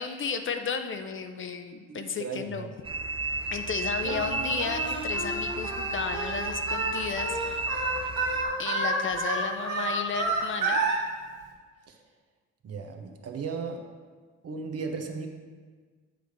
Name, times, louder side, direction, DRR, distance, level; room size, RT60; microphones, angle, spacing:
voice 1, 0.0-2.7 3.5-7.4 8.6-10.8, left 6 dB, 40° left, 7 dB, 0.5 m, -33 dB
voice 2, 1.9-2.7 4.0-4.4 11.9-12.0 12.6-13.8 14.4-15.3, right 5 dB, 55° right, 3 dB, 0.9 m, -36 dB
sound 1, 2.8-8.5, right 3 dB, 20° right, 0.4 m, -33 dB
Singing, 4.1-11.0, right 3 dB, 85° right, 2.0 m, -30 dB
7.7 x 3.3 x 5.2 m, 1.5 s
cardioid pair, 90°, 30 cm